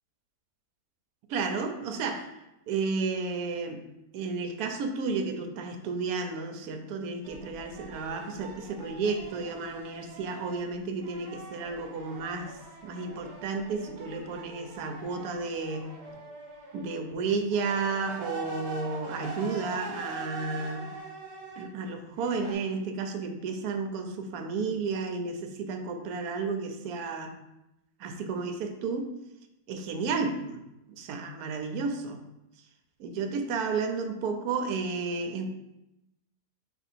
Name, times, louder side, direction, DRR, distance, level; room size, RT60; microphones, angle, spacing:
voice 1, 1.3-2.3 2.7-3.8 4.1-15.9 16.7-20.9 21.6-27.3 28.0-29.1 29.7-30.6 30.9-32.2 33.0-35.5, right 4 dB, 70° right, 6 dB, 1.0 m, -32 dB
sound 1, 7.2-10.7 11.0-17.0 17.5-21.7 22.2-22.5, right 3 dB, 50° right, 0.9 m, -43 dB
4.4 x 2.7 x 4.1 m, 0.92 s
omnidirectional pair, 1.8 m